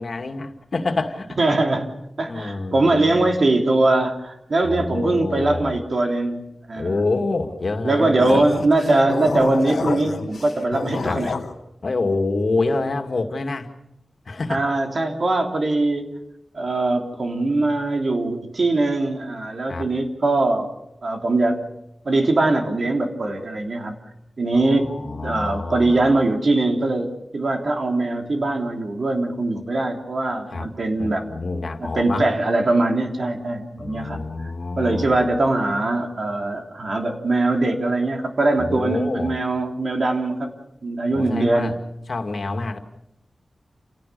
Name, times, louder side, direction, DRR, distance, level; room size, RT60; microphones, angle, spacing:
voice 1, 0.0-1.4 2.3-3.3 4.6-5.8 6.8-8.4 11.0-11.2 11.8-13.7 14.3-14.6 19.7-19.9 24.5-26.0 30.5-30.7 31.0-32.3 33.8-35.3 38.6-39.4 41.1-41.7 42.1-42.8, left 3 dB, 60° left, 5 dB, 2.3 m, -27 dB
voice 2, 1.4-1.9 2.2-7.0 7.8-11.3 14.5-16.1 16.5-20.7 21.0-21.6 22.0-24.0 24.4-31.2 31.8-34.2 34.8-40.5 40.8-41.8, right 2 dB, 60° right, 3 dB, 3.3 m, -21 dB
sound 1, 8.2-11.5, left 4 dB, 80° left, 1.6 m, -28 dB
29.0 x 17.0 x 6.9 m, 0.85 s
wide cardioid pair, 95°, 0 cm